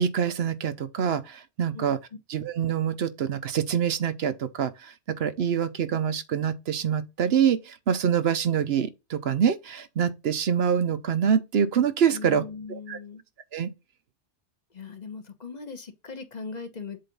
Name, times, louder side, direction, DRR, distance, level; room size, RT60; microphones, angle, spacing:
voice 1, 0.0-2.0 2.3-12.4 12.7-13.0 13.5-13.7, right 8 dB, 65° right, 0.9 m, -25 dB
voice 2, 12.1-13.2 14.7-17.0, left 5 dB, 40° left, 1.2 m, -39 dB
7.7 x 2.6 x 5.3 m
omnidirectional pair, 1.2 m